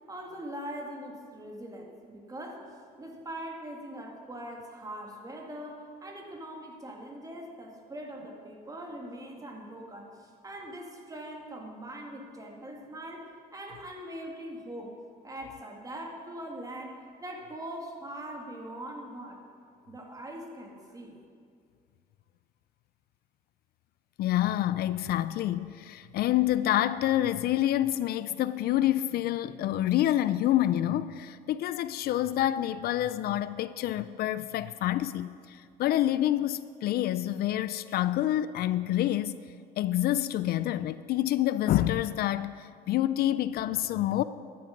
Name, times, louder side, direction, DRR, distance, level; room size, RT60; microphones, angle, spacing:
voice 1, 0.1-15.0 15.2-19.4 19.9-21.2, right 1 dB, 20° right, 2.2 m, -42 dB
voice 2, 24.2-39.4 39.8-44.2, left 13 dB, 65° left, 0.4 m, -27 dB
14.0 x 10.5 x 5.3 m
cardioid pair, 110°, 17 cm